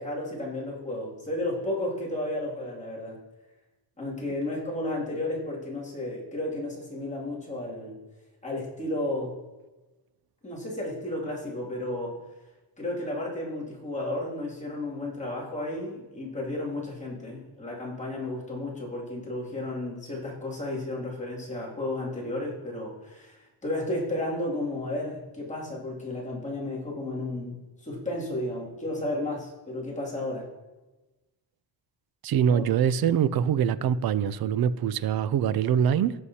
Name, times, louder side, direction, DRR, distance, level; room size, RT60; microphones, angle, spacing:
voice 1, 0.0-3.2 4.0-8.0 8.4-9.3 10.4-12.2 12.8-30.4 32.5-32.6, left 1 dB, 15° left, -5 dB, 2.5 m, -33 dB
voice 2, 32.2-36.1, right 8 dB, 55° right, 16 dB, 0.5 m, -24 dB
16.5 x 6.4 x 2.8 m, 1.1 s
wide cardioid pair, 170°, 44 cm